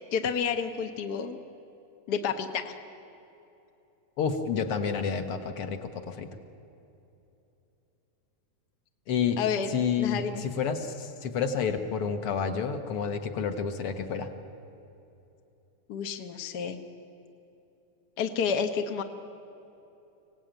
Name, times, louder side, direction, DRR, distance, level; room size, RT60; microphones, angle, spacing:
voice 1, 0.1-1.4 2.1-2.7 9.4-9.7 10.0-10.4 15.9-16.8 18.2-19.0, left 6 dB, 75° left, 6 dB, 0.9 m, -30 dB
voice 2, 4.2-6.3 9.1-9.4 9.7-14.3, left 6 dB, 55° left, 7 dB, 1.8 m, -29 dB
25.0 x 17.5 x 9.1 m, 2.9 s
omnidirectional pair, 3.6 m